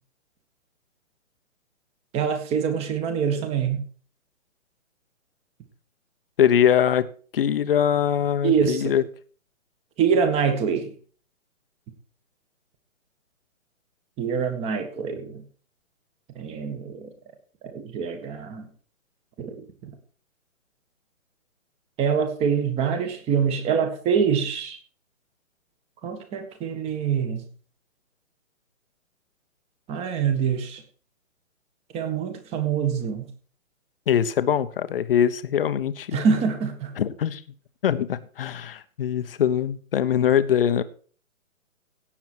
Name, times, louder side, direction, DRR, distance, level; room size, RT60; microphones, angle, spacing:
voice 1, 2.1-3.8 8.4-9.0 10.0-10.9 14.2-15.4 16.4-17.1 17.7-18.7 19.4-19.9 22.0-24.8 26.0-27.5 29.9-30.8 31.9-33.3 36.1-36.9, right 6 dB, 15° right, 8 dB, 1.6 m, -25 dB
voice 2, 6.4-7.0 7.3-9.0 34.1-36.2 37.0-37.4 37.8-40.8, left 9 dB, 40° left, 12 dB, 1.0 m, -22 dB
17.0 x 7.2 x 4.6 m, 0.42 s
figure-of-eight pair, 145°, 41 cm